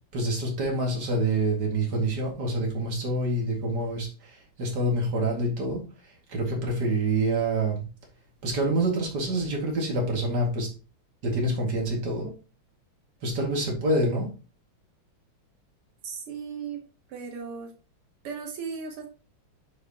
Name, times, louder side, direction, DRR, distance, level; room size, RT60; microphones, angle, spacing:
voice 1, 0.1-5.8 6.3-7.8 8.4-10.7 11.2-12.3 13.2-14.3, right 1 dB, 50° right, -1 dB, 2.7 m, -27 dB
voice 2, 16.0-16.8 17.1-17.7 18.2-19.1, right 6 dB, 90° right, 3 dB, 2.2 m, -36 dB
11.5 x 4.7 x 2.9 m, 0.34 s
omnidirectional pair, 2.4 m